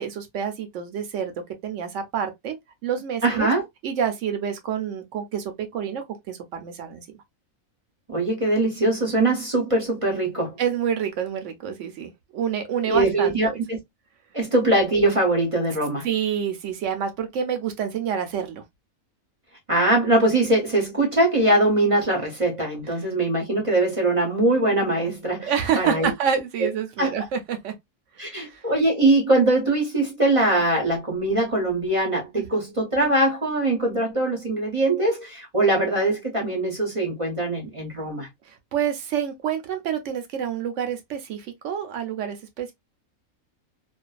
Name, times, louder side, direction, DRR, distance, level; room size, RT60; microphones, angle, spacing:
voice 1, 0.0-1.3 1.6-2.6 2.8-3.5 3.8-7.1 10.6-13.5 16.0-18.6 25.4-27.7 28.2-28.6 38.5-42.7, right 8 dB, 65° right, 0.8 m, -28 dB
voice 2, 3.2-3.6 8.1-10.5 12.8-13.8 14.3-16.1 19.7-26.1 26.6-26.7 27.0-27.1 28.2-38.3, right 2 dB, 35° right, 0.5 m, -22 dB
2.5 x 2.2 x 2.3 m
omnidirectional pair, 1.5 m